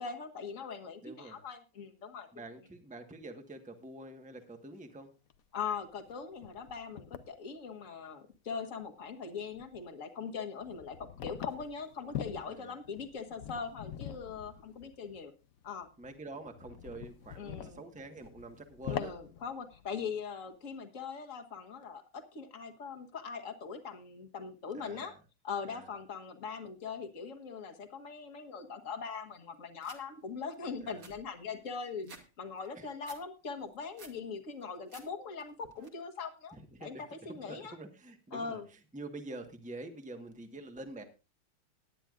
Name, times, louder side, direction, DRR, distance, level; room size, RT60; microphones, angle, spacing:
voice 1, 0.0-2.3 5.5-15.3 15.6-15.9 17.3-17.8 18.9-25.1 25.4-37.8 38.3-38.7, left 5 dB, 40° left, 5 dB, 1.7 m, -41 dB
voice 2, 1.0-1.4 2.3-5.1 12.4-12.7 16.0-19.1 24.7-25.2 25.7-25.9 30.8-31.1 32.8-32.9 36.5-37.0 37.3-38.6 38.9-41.0, right 2 dB, 5° right, 6 dB, 1.0 m, -46 dB
sound 1, 4.7-4.8 5.3-5.4 5.7-7.3 8.3-8.4 8.8-9.2 9.4-9.8 10.6-20.0, left 9 dB, 60° left, 0.9 m, -44 dB
sound 2, 29.8-30.0 30.5-30.6 30.8-32.3 32.6-33.2 33.6-34.2 34.6-35.1 35.4-35.9, right 4 dB, 45° right, 2.1 m, -53 dB
18.5 x 10.0 x 2.5 m, 0.30 s
omnidirectional pair, 2.2 m